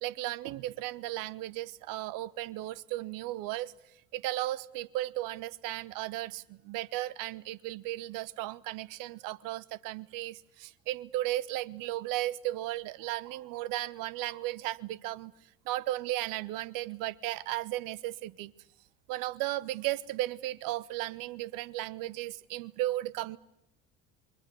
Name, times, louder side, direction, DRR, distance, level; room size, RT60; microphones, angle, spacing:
voice 1, 0.0-3.7 4.1-15.3 15.6-18.5 19.1-23.4, right 16 dB, 55° right, 1.1 m, -35 dB
27.5 x 24.0 x 8.1 m
figure-of-eight pair, 55°, 40 cm